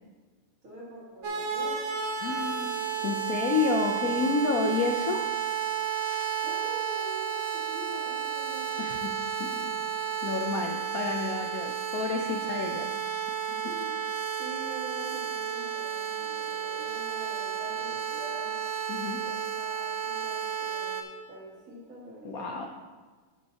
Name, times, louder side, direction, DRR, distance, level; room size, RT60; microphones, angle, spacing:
voice 1, 0.6-2.0 6.4-8.8 10.3-10.6 12.3-12.5 13.6-14.0 14.4-18.6 19.2-22.7, right 1 dB, 40° right, -10 dB, 2.2 m, -45 dB
sound 1, 1.2-21.0, right 8 dB, 85° right, 0.6 m, -32 dB
voice 2, 2.2-5.3 8.8-9.8 10.2-12.9 13.3-13.7 18.9-19.2 22.2-22.7, left 4 dB, 80° left, 3 dB, 0.8 m, -30 dB
14.0 x 5.4 x 2.9 m, 1.4 s
omnidirectional pair, 2.4 m